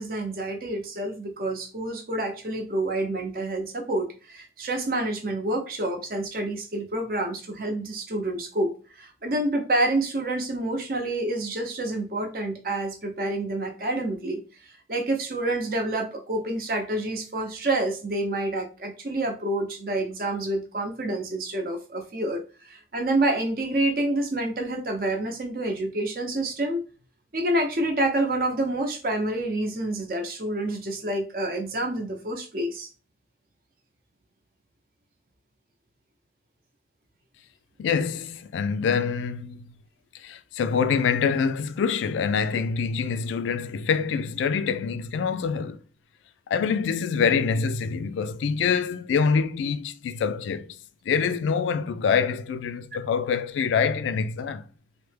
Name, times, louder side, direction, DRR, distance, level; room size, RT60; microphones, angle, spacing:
voice 1, 0.0-8.7 9.0-14.4 14.9-26.8 27.3-32.9, right 1 dB, 50° right, 0.6 m, -28 dB
voice 2, 37.8-39.8 40.1-45.8 46.5-50.8 51.1-54.6, left 6 dB, 90° left, 0.3 m, -25 dB
3.2 x 2.1 x 3.2 m
head